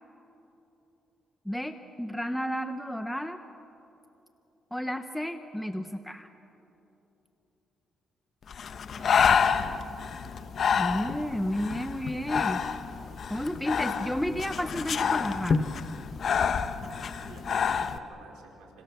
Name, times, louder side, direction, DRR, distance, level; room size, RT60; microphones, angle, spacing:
voice 1, 1.4-3.4 4.7-6.3 10.8-12.6 13.3-15.7, equal, 5° left, 7 dB, 1.1 m, -32 dB
Breathing, 8.5-18.0, left 6 dB, 55° left, 1.1 m, -28 dB
voice 2, 9.0-9.7 16.9-18.8, right 4 dB, 90° right, 0 dB, 4.4 m, -51 dB
28.5 x 26.5 x 7.0 m, 3.0 s
cardioid pair, 90°, 0 cm